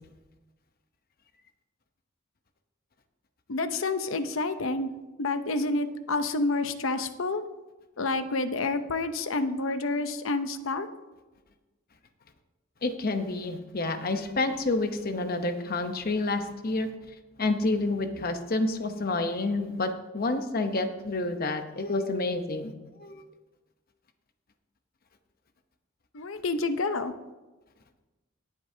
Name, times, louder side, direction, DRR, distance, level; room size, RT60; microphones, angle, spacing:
voice 1, 3.5-4.9 5.2-7.4 8.0-10.9 26.1-27.1, left 3 dB, 75° left, 10 dB, 0.7 m, -29 dB
voice 2, 12.8-16.9 17.4-22.7 23.0-23.2, left 2 dB, 45° left, 7 dB, 0.9 m, -29 dB
17.5 x 8.4 x 2.8 m, 1.2 s
head